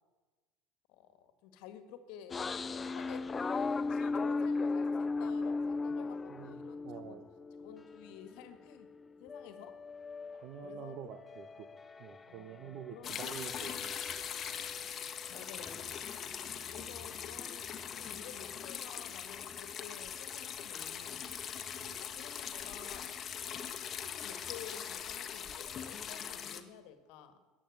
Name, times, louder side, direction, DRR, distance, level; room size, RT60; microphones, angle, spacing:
voice 1, 0.9-3.2 3.9-7.2 7.6-8.9 9.2-9.8 10.6-11.1 12.3-13.2 15.3-16.2 16.7-21.7 22.0-23.2 24.2-27.4, left 9 dB, 65° left, 10 dB, 1.6 m, -52 dB
sound 1, 2.3-8.3 8.7-12.9 13.2-15.8, left 3 dB, 25° left, 0.4 m, -38 dB
voice 2, 6.8-7.3 10.3-11.7 12.0-14.2 21.8-22.0, right 10 dB, 55° right, 10 dB, 0.9 m, -47 dB
sound 2, 13.0-26.6, left 8 dB, 40° left, 1.3 m, -41 dB
15.0 x 10.5 x 7.9 m, 1.3 s
hypercardioid pair, 70°, 0 cm